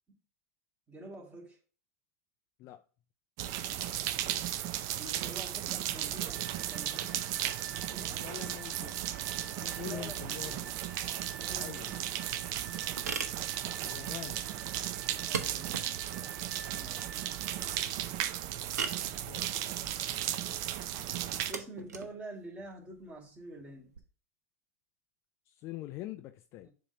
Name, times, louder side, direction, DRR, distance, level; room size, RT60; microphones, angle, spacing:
voice 1, 0.9-1.6 5.0-7.3 7.9-8.3 9.6-10.8 11.4-12.1 15.2-16.4 16.7-17.2 21.5-23.9 26.6-26.7, right 2 dB, 15° right, 2.2 m, -48 dB
sound 1, 3.4-21.5, right 12 dB, 45° right, 0.6 m, -35 dB
sound 2, 6.3-17.9, right 4 dB, 65° right, 1.6 m, -51 dB
voice 2, 8.2-9.1 9.6-10.7 11.6-11.9 13.8-14.4 19.2-19.5 25.5-26.7, left 15 dB, 35° left, 0.3 m, -44 dB
sound 3, 11.7-24.0, right 6 dB, 85° right, 1.0 m, -43 dB
6.9 x 2.9 x 5.2 m
hypercardioid pair, 120°, 9 cm